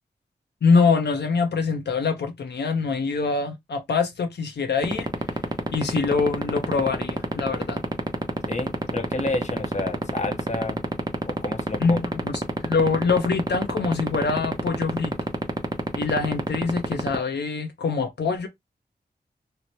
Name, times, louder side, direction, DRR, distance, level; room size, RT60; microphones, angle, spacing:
voice 1, 0.6-5.1 5.7-7.8 11.8-15.1 15.9-18.5, left 4 dB, 75° left, 0.6 m, -24 dB
sound 1, 4.8-17.1, right 2 dB, 20° right, 0.7 m, -23 dB
voice 2, 8.5-10.8 11.3-12.1, left 2 dB, 40° left, 0.7 m, -30 dB
2.7 x 2.1 x 3.0 m
cardioid pair, 45°, 18 cm